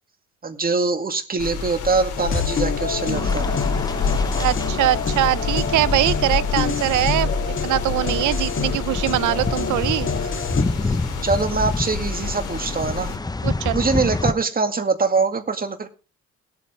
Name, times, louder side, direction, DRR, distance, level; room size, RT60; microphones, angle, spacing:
voice 1, 0.4-3.4 10.8-11.0 11.2-13.1 13.7-15.9, right 4 dB, 30° right, 2.1 m, -23 dB
sound 1, 1.4-13.2, left 5 dB, 80° left, 3.3 m, -28 dB
sound 2, 2.2-10.6, left 6 dB, 40° left, 2.7 m, -28 dB
sound 3, 3.1-14.3, left 3 dB, 15° left, 0.8 m, -29 dB
voice 2, 4.4-7.3 7.6-10.1 13.4-13.8, right 15 dB, 80° right, 0.6 m, -22 dB
19.5 x 8.7 x 3.2 m
cardioid pair, 90°, 30 cm